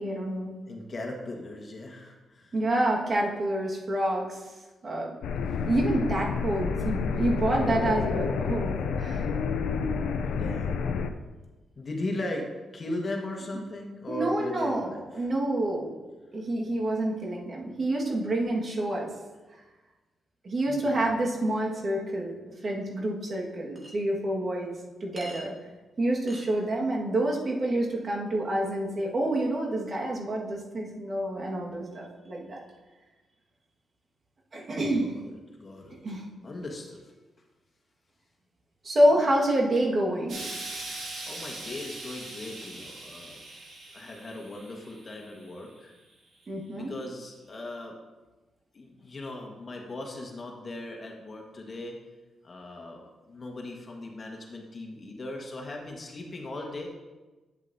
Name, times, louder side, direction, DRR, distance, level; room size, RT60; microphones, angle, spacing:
voice 1, 0.0-0.5 2.5-4.4 4.8-5.1 5.7-9.3 14.1-15.9 16.3-19.1 20.4-22.4 22.6-24.7 25.0-25.5 26.0-32.6 34.5-35.1 36.0-36.3 38.8-40.4 46.5-46.9, right 1 dB, 50° right, -1 dB, 1.7 m, -28 dB
voice 2, 0.6-2.6 5.5-5.6 10.2-10.8 11.8-15.3 20.7-21.1 34.8-37.1 39.1-39.3 41.2-43.4 43.9-45.9 46.8-48.0 48.7-52.0 52.4-56.9, left 2 dB, 45° left, 1 dB, 1.5 m, -38 dB
sound 1, 5.2-11.1, left 5 dB, 85° left, 0.4 m, -29 dB
Chink clink, 23.8-23.9 25.2-25.4 26.3-26.5, equal, 25° right, 2.0 m, -43 dB
Explosion, 40.3-45.6 46.4-46.5, right 2 dB, 75° right, 2.5 m, -41 dB
8.5 x 8.0 x 2.7 m, 1.2 s
cardioid pair, 60°, 0 cm